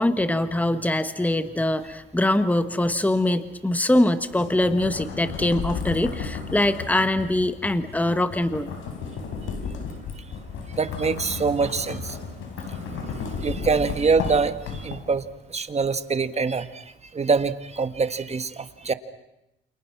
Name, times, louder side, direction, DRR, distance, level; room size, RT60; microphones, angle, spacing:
voice 1, 0.0-8.7, left 1 dB, 10° left, 10 dB, 1.5 m, -23 dB
sound 1, 4.3-15.3, left 5 dB, 85° left, 4.5 m, -34 dB
voice 2, 10.7-12.2 12.9-15.2 15.5-16.8 17.1-18.9, right 4 dB, 35° right, 10 dB, 1.7 m, -25 dB
29.0 x 28.0 x 6.1 m, 0.89 s
cardioid pair, 90°, 20 cm